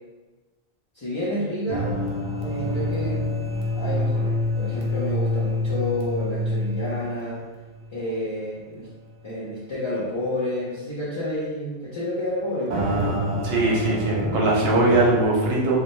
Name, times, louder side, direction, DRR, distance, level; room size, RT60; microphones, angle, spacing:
voice 1, 0.9-2.0 2.4-3.4 3.7-7.4 7.9-8.9 9.2-14.4, left 1 dB, 35° left, -8 dB, 0.5 m, -30 dB
sound 1, 1.7-8.2 8.5-8.6 9.2-9.3 12.7-15.2, left 1 dB, 55° right, 0.6 m, -27 dB
voice 2, 13.4-15.8, right 2 dB, 80° right, -3 dB, 0.9 m, -20 dB
2.6 x 2.1 x 3.0 m, 1.2 s
omnidirectional pair, 1.0 m